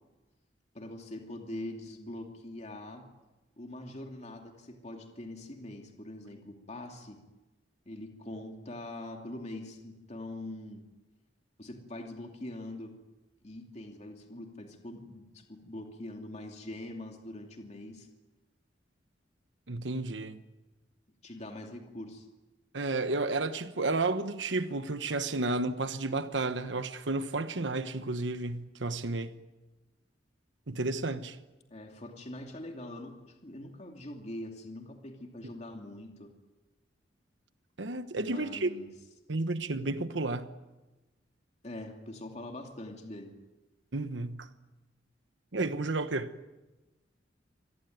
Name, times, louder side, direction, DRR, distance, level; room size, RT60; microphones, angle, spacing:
voice 1, 0.7-3.1 3.6-7.2 7.9-10.8 11.6-12.9 13.4-18.1 21.2-22.3 31.7-36.3 38.2-38.9 41.6-43.3, left 1 dB, 40° left, 2.7 m, -43 dB
voice 2, 19.7-20.4 22.7-29.4 30.7-31.4 37.8-38.7 39.3-40.5 43.9-44.5 45.5-46.3, right 2 dB, 85° right, 1.2 m, -32 dB
26.0 x 18.5 x 9.4 m
head